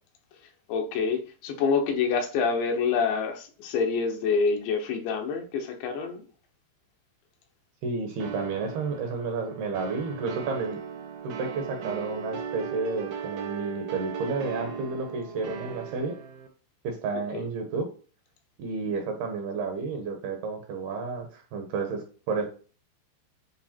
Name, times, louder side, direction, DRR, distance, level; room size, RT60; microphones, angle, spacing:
voice 1, 0.7-6.2 17.3-17.4, left 5 dB, 75° left, 3 dB, 3.2 m, -27 dB
voice 2, 7.8-10.8 11.2-16.2 16.8-17.9 18.6-22.5, right 4 dB, 70° right, 4 dB, 2.7 m, -31 dB
sound 1, 8.2-16.5, right 6 dB, 85° right, 1.8 m, -37 dB
10.0 x 3.3 x 4.4 m, 0.38 s
omnidirectional pair, 5.4 m